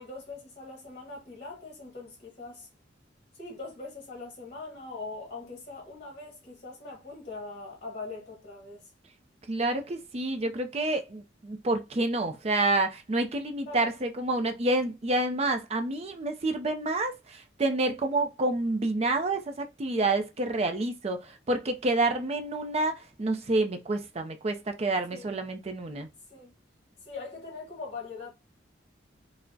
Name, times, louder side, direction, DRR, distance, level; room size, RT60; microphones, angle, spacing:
voice 1, 0.0-2.7 3.3-8.9 13.7-13.9 20.6-20.8 25.1-25.3 26.3-26.5 27.0-28.3, left 3 dB, 35° left, 1.2 m, -42 dB
voice 2, 9.5-26.1, right 2 dB, 35° right, 0.4 m, -28 dB
4.2 x 2.1 x 2.7 m
head